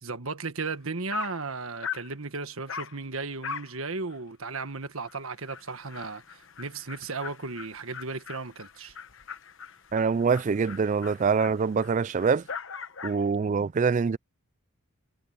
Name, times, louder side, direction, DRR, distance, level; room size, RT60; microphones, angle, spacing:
voice 1, 0.0-9.0, right 3 dB, 70° right, 1.5 m, -35 dB
Dog, 0.7-0.8 1.1-1.4 1.8-2.1 2.7-3.0 3.4-3.7 4.1-4.2 4.6-4.7 5.1-5.2 5.5-13.3, left 5 dB, 60° left, 1.1 m, -40 dB
voice 2, 9.9-12.4 13.0-14.2, right 5 dB, 35° right, 0.3 m, -24 dB
head